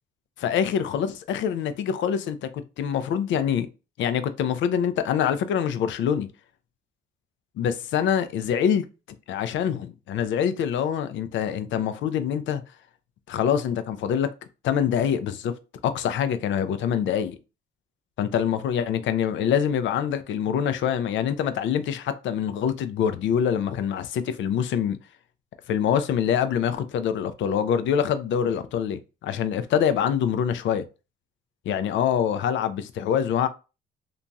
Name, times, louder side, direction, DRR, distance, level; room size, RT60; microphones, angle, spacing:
voice 1, 0.4-2.5 2.8-3.7 4.0-6.3 7.6-8.9 9.3-12.6 13.3-14.3 14.6-15.5 15.8-17.4 18.2-25.0 25.7-30.8 31.7-33.5, left 8 dB, 75° left, 0.4 m, -25 dB
2.9 x 2.6 x 2.2 m
cardioid pair, 90°, 20 cm